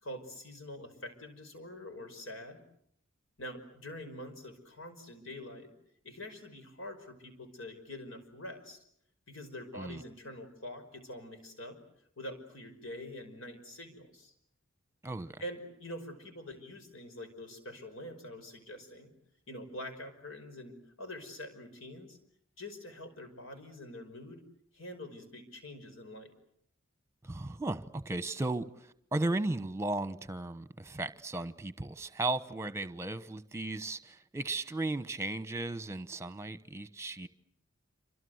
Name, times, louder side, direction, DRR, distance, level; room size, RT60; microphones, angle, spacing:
voice 1, 0.0-2.6 3.4-5.7 6.0-8.8 9.3-11.8 12.2-14.3 15.4-19.1 19.5-22.2 22.6-24.4 24.7-26.3, left 1 dB, 80° left, 5.5 m, -45 dB
voice 2, 15.0-15.4 27.2-37.3, right 2 dB, 15° right, 1.1 m, -35 dB
28.5 x 25.5 x 8.0 m
head